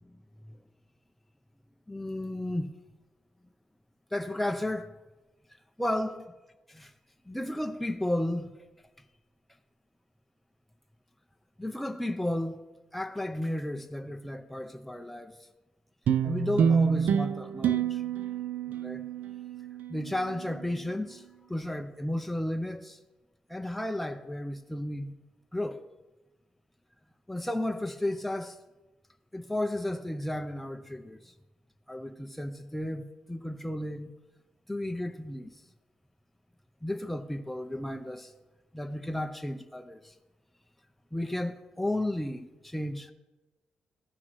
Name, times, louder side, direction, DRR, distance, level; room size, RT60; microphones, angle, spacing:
voice 1, 1.9-2.7 4.1-5.0 5.8-6.2 6.7-6.9 7.3-8.5 11.6-12.6 12.9-15.4 16.2-18.0 18.8-19.0 19.9-23.0 23.5-25.1 25.5-25.8 27.3-28.6 29.3-31.3 31.9-34.1 34.7-35.5 36.8-38.3 38.7-40.1 41.1-43.1, left 1 dB, 5° left, 0.5 m, -33 dB
sound 1, 16.1-20.7, right 7 dB, 75° right, 0.3 m, -28 dB
14.5 x 6.0 x 3.1 m
cardioid pair, 90°, 3 cm